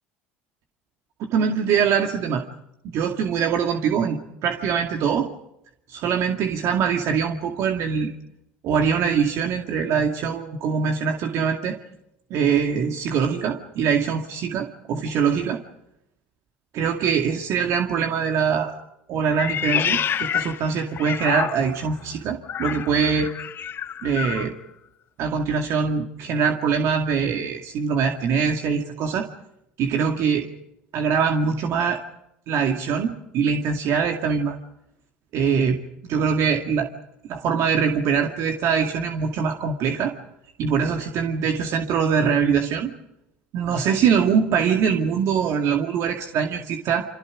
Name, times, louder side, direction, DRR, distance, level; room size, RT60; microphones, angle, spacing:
voice 1, 1.2-2.4 2.8-5.3 5.9-8.1 8.6-11.8 12.3-15.6 16.7-18.7 19.1-23.3 24.0-24.6 25.2-29.3 29.8-30.5 30.9-32.0 32.5-34.6 35.3-35.8 36.1-36.9 37.3-40.1 40.6-42.9 43.5-47.1, right 6 dB, 65° right, 3 dB, 2.2 m, -23 dB
Meow, 19.3-21.9 22.4-24.5, left 9 dB, 45° left, 0.9 m, -28 dB
28.5 x 26.0 x 5.0 m, 0.82 s
supercardioid pair, 85°, 6 cm